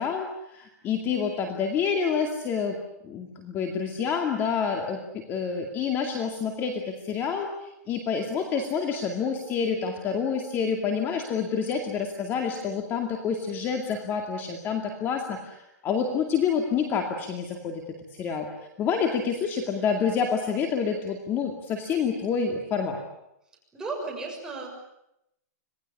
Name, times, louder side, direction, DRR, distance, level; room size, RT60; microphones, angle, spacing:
voice 1, 0.0-2.8 3.0-18.5 18.8-23.0, left 6 dB, 20° left, 4 dB, 2.4 m, -28 dB
voice 2, 23.7-24.8, right 3 dB, 5° right, -1 dB, 6.7 m, -34 dB
26.5 x 19.5 x 9.9 m, 0.85 s
hypercardioid pair, 160°, 9 cm